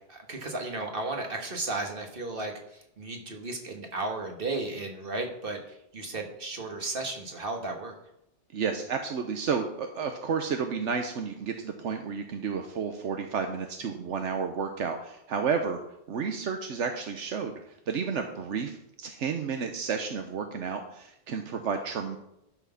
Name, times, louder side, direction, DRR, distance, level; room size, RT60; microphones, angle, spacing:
voice 1, 0.1-7.9, right 2 dB, 50° right, 2 dB, 1.6 m, -34 dB
voice 2, 8.5-15.8 16.1-17.6 17.9-22.2, right 6 dB, 80° right, 5 dB, 1.2 m, -31 dB
12.0 x 5.9 x 5.8 m, 0.81 s
omnidirectional pair, 1.2 m